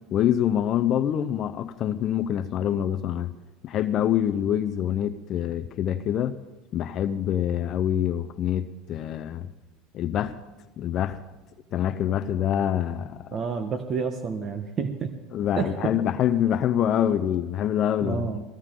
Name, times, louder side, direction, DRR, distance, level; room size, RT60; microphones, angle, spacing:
voice 1, 0.1-3.3 3.6-6.4 6.7-9.5 9.9-10.4 10.8-11.2 11.7-13.3 15.3-18.3, left 10 dB, 50° left, 10 dB, 0.6 m, -25 dB
voice 2, 13.3-15.1 15.6-15.9 18.0-18.4, right 5 dB, 40° right, 7 dB, 1.1 m, -29 dB
19.5 x 15.5 x 3.8 m, 1.1 s
supercardioid pair, 100°, 0 cm